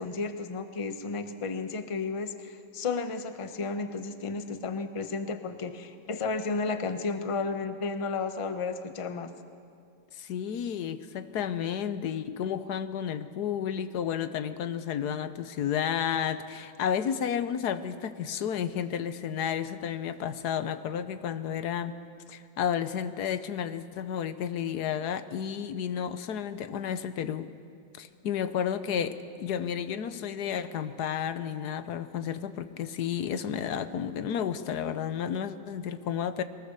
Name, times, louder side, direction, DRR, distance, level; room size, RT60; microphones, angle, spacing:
voice 1, 0.0-9.3, left 4 dB, 30° left, 9 dB, 0.6 m, -33 dB
voice 2, 10.1-21.9 22.3-27.5 28.0-36.4, left 8 dB, 65° left, 12 dB, 1.3 m, -32 dB
22.0 x 20.0 x 6.7 m, 2.3 s
omnidirectional pair, 2.0 m